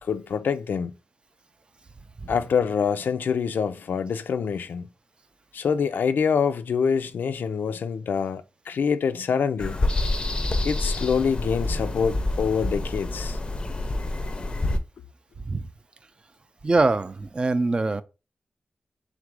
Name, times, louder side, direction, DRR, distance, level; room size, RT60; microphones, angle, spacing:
voice 1, 0.0-0.9 2.3-4.9 5.5-9.8 10.6-13.4, left 6 dB, 90° left, 0.4 m, -25 dB
sound 1, 9.6-14.8, left 2 dB, 30° left, 0.5 m, -27 dB
voice 2, 16.6-18.0, right 3 dB, 30° right, 0.3 m, -23 dB
3.6 x 2.5 x 4.6 m
wide cardioid pair, 120°, 3 cm